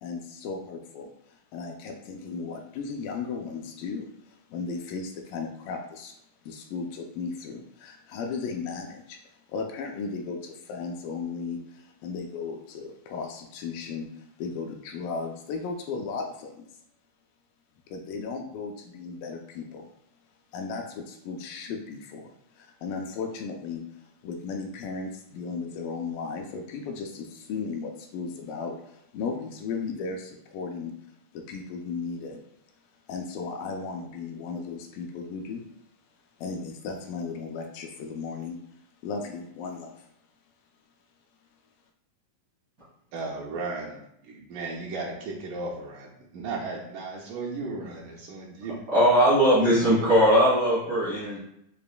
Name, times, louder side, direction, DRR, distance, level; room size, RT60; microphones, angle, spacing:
voice 1, 0.0-6.1 6.4-16.7 17.9-19.9 20.5-30.9 31.3-32.4 33.1-35.7 36.4-38.6 39.0-40.1, left 4 dB, 80° left, 2 dB, 2.1 m, -35 dB
voice 2, 43.1-48.8, right 3 dB, 80° right, -2 dB, 2.1 m, -35 dB
voice 3, 48.9-51.4, equal, 60° right, -9 dB, 1.0 m, -20 dB
6.7 x 2.5 x 2.2 m, 0.77 s
omnidirectional pair, 4.0 m